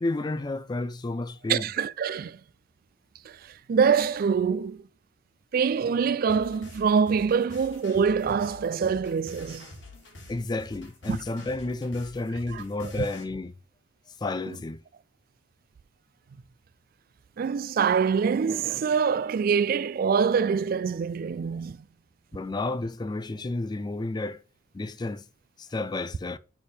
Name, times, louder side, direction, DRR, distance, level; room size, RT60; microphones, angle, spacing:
voice 1, 0.0-1.7 10.3-13.5 14.2-14.8 22.3-24.4 24.7-25.2 25.6-26.4, left 2 dB, 20° left, 0.4 m, -31 dB
voice 2, 1.5-2.4 3.3-3.4 3.7-4.8 5.5-9.7 11.1-11.2 12.5-12.6 17.4-21.8, right 6 dB, 50° right, 0.3 m, -25 dB
sound 1, 6.3-13.2, left 2 dB, 75° left, 1.6 m, -47 dB
6.5 x 3.5 x 4.2 m
head